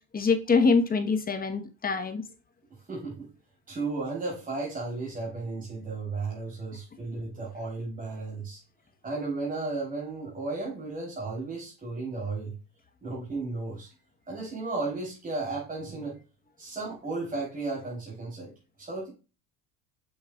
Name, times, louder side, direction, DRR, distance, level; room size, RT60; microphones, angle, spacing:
voice 1, 0.1-2.2, left 4 dB, 25° left, 1.2 m, -24 dB
voice 2, 2.9-3.3 3.7-8.6 9.0-12.5 13.0-13.9 14.3-16.2 16.6-18.5 18.8-19.1, right 3 dB, 25° right, 3.7 m, -34 dB
6.6 x 6.3 x 2.4 m
supercardioid pair, 100°, 34 cm